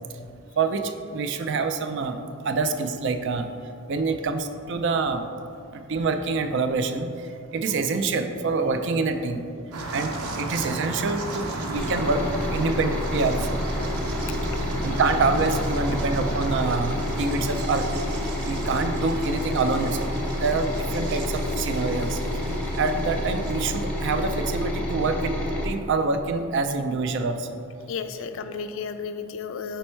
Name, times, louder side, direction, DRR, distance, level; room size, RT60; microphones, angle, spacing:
voice 1, 0.6-2.2 2.4-3.5 3.9-5.3 5.7-9.4 9.9-12.2 12.5-13.6 14.8-17.9 18.5-20.1 20.4-22.2 22.8-25.4 25.6-27.5, right 4 dB, 55° right, 8 dB, 0.3 m, -26 dB
sound 1, 9.7-24.5, right 2 dB, 85° right, 0.7 m, -34 dB
sound 2, 11.8-25.7, left 1 dB, 5° left, 0.6 m, -29 dB
voice 2, 14.3-14.6 14.9-15.0 15.9-16.0 27.9-29.8, left 5 dB, 60° left, 9 dB, 0.3 m, -34 dB
5.3 x 4.3 x 4.4 m, 2.5 s
head